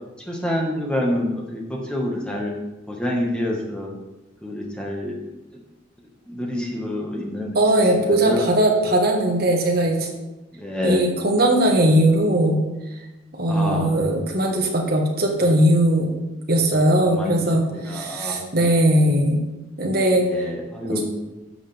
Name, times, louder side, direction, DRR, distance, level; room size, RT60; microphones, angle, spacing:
voice 1, 0.3-2.5 2.9-3.9 4.4-5.2 6.3-8.4 10.5-11.1 13.5-13.9 17.1-18.6 20.2-21.0, left 1 dB, 5° left, -2 dB, 1.7 m, -27 dB
voice 2, 7.5-10.1 10.8-12.6 13.4-16.1 16.5-19.4 19.8-20.5, right 1 dB, 50° right, 1 dB, 1.6 m, -19 dB
12.0 x 7.2 x 3.6 m, 1.0 s
head